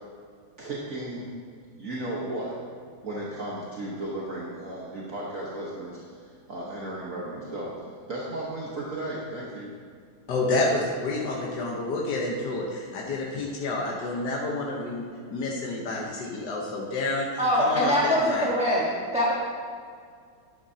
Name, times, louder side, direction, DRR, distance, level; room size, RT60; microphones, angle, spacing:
voice 1, 0.6-1.3 1.8-2.6 3.0-7.7 8.1-9.7, right 1 dB, 55° right, -5 dB, 1.6 m, -35 dB
voice 2, 10.3-15.0 15.3-17.9 18.2-18.5, left 2 dB, 85° left, -2 dB, 1.7 m, -29 dB
voice 3, 17.4-19.3, equal, 5° right, -6 dB, 1.1 m, -23 dB
11.5 x 10.5 x 2.8 m, 2.1 s
omnidirectional pair, 1.8 m